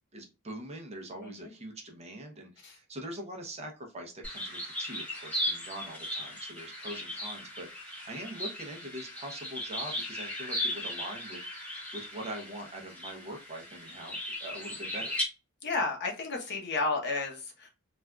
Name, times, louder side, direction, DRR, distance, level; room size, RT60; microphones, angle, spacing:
voice 1, 0.1-15.2, right 1 dB, 30° right, 2 dB, 0.6 m, -43 dB
sound 1, 4.2-15.2, equal, 5° left, 1.0 m, -37 dB
voice 2, 15.6-17.7, left 3 dB, 50° left, 1 dB, 0.9 m, -32 dB
3.4 x 2.4 x 2.2 m, 0.30 s
head